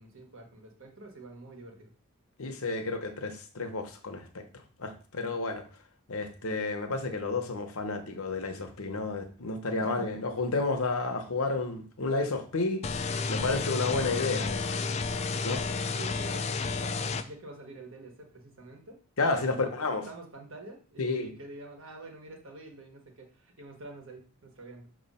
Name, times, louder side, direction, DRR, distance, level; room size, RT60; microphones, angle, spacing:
voice 1, 0.0-1.9 9.8-10.3 15.7-19.0 19.3-24.9, right 2 dB, 60° right, 2 dB, 1.4 m, -47 dB
voice 2, 2.4-4.4 4.8-5.6 6.1-12.8 13.3-14.8 15.4-15.6 19.2-20.1 21.0-21.3, left 3 dB, 70° left, 7 dB, 0.9 m, -31 dB
sound 1, 12.8-17.2, left 4 dB, 30° left, 0.3 m, -31 dB
6.2 x 3.1 x 5.5 m, 0.39 s
head